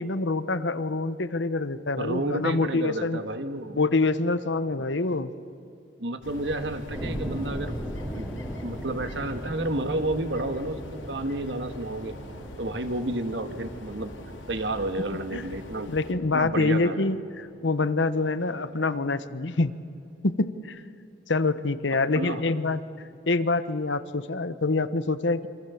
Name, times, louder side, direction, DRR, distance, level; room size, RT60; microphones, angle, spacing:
voice 1, 0.0-3.2 3.7-5.3 15.3-15.5 15.9-19.7 20.2-20.8 21.3-22.8 23.3-25.5, left 3 dB, 70° left, 13 dB, 1.1 m, -26 dB
voice 2, 2.0-3.8 4.8-4.9 6.0-8.3 8.6-12.2 12.6-14.1 14.5-15.9 16.3-17.1 22.1-22.4, right 2 dB, 65° right, 9 dB, 1.8 m, -31 dB
sound 1, 6.2-16.1, left 1 dB, 85° left, 3.3 m, -43 dB
sound 2, 6.9-17.7, equal, 5° right, 2.8 m, -39 dB
27.5 x 25.5 x 7.2 m, 2.6 s
head